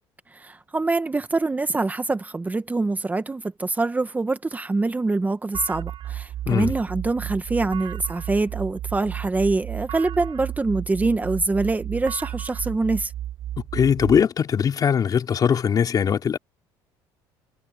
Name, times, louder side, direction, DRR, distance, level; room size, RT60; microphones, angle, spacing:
voice 1, 0.3-13.1, right 3 dB, 15° right, 1.3 m, -25 dB
sound 1, 5.5-14.2, right 12 dB, 65° right, 3.8 m, -33 dB
voice 2, 13.7-16.4, left 7 dB, 40° left, 3.8 m, -20 dB
supercardioid pair, 95°, 9 cm